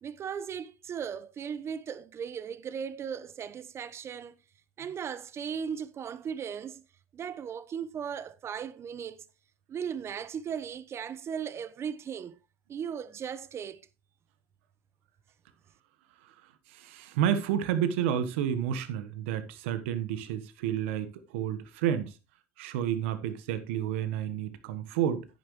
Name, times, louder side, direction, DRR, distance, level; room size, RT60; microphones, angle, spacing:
voice 1, 0.0-4.4 4.8-6.8 7.1-9.3 9.7-12.3 12.7-13.8, right 7 dB, 40° right, 1.0 m, -37 dB
voice 2, 16.7-22.1 22.6-25.3, right 9 dB, 80° right, 1.3 m, -30 dB
10.5 x 9.4 x 3.1 m
hypercardioid pair, 80°, 7 cm